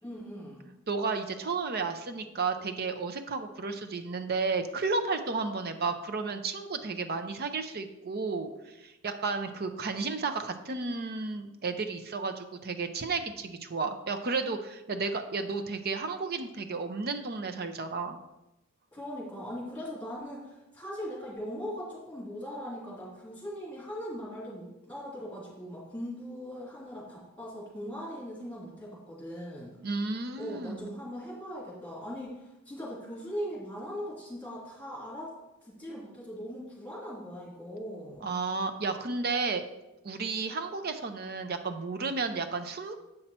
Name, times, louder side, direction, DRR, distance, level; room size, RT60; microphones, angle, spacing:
voice 1, 0.0-0.7 18.9-29.8 30.3-35.3 35.6-38.4, equal, 10° left, -6 dB, 2.9 m, -40 dB
voice 2, 0.9-18.2 29.8-30.9 38.2-39.6 40.0-43.0, right 4 dB, 45° right, 8 dB, 0.7 m, -32 dB
7.8 x 5.7 x 4.3 m, 0.96 s
head